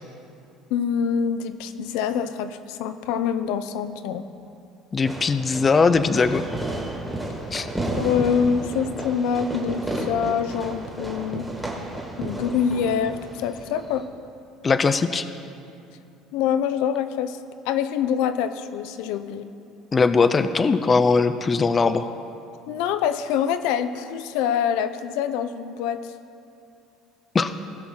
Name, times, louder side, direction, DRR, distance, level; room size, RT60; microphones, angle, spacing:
voice 1, 0.7-4.3 7.9-11.5 12.2-14.1 16.3-17.4 17.7-19.5 22.7-26.1, left 7 dB, 75° left, 11 dB, 0.5 m, -25 dB
voice 2, 4.9-6.4 7.5-7.7 14.6-15.3 19.9-22.1 27.3-27.5, left 4 dB, 20° left, 11 dB, 0.3 m, -20 dB
Fireworks, 5.0-14.1, right 1 dB, 5° right, 1.4 m, -32 dB
18.0 x 6.0 x 3.7 m, 2.7 s
cardioid pair, 150°, 0 cm